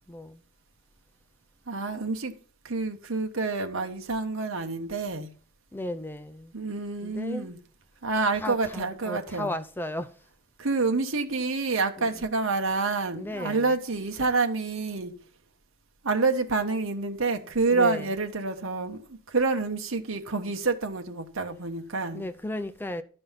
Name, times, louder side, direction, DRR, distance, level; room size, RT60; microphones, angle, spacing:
voice 1, 0.1-0.4 5.7-6.5 7.0-7.5 8.4-10.1 13.1-13.7 17.7-18.1 22.1-23.0, left 1 dB, 10° left, 0.5 m, -34 dB
voice 2, 1.7-2.3 2.6-5.3 6.5-7.6 8.0-9.5 10.6-15.1 16.0-22.3, right 3 dB, 75° right, 1.2 m, -28 dB
12.0 x 5.4 x 5.8 m
head